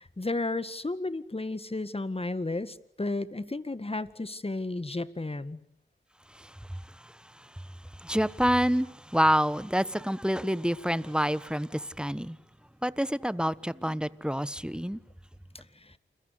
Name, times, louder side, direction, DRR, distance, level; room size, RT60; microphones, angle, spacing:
voice 1, 0.0-5.6 15.8-16.0, left 2 dB, 30° left, 1.9 m, -33 dB
voice 2, 6.3-12.4 12.8-15.0, equal, 5° right, 1.3 m, -28 dB
29.5 x 22.5 x 8.3 m
cardioid pair, 40°, 20 cm